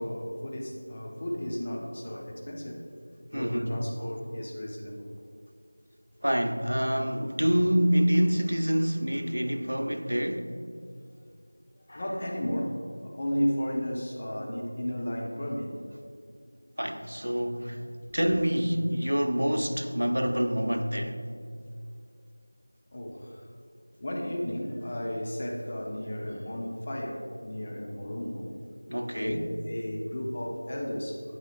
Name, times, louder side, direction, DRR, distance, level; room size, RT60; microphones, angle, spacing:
voice 1, 0.0-2.8 3.3-5.1 11.9-15.8 18.0-18.1 22.9-23.5 24.0-28.6 29.1-31.4, equal, 30° left, 1.0 m, -34 dB
voice 2, 3.3-3.7 6.2-10.5 16.8-17.8 18.1-21.2 28.9-29.5, equal, 85° right, 0.8 m, -26 dB
11.0 x 8.8 x 2.5 m
figure-of-eight pair, 175°, 0 cm